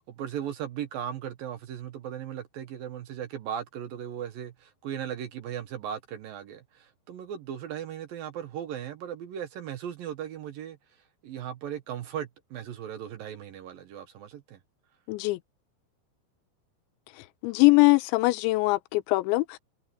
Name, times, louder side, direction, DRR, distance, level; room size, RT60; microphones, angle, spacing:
voice 1, 0.0-14.6, right 9 dB, 65° right, 2.5 m, -37 dB
voice 2, 15.1-15.4 17.4-19.6, left 22 dB, 90° left, 3.0 m, -22 dB
omnidirectional pair, 5.2 m